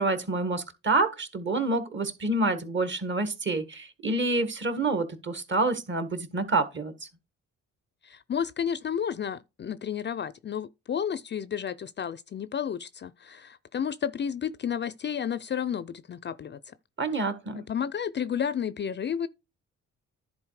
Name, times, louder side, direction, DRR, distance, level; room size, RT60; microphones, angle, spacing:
voice 1, 0.0-6.9 17.0-17.6, right 3 dB, 40° right, 1.7 m, -27 dB
voice 2, 8.0-16.7 17.5-19.3, left 8 dB, 35° left, 0.4 m, -32 dB
10.5 x 4.2 x 4.7 m
cardioid pair, 90°, 30 cm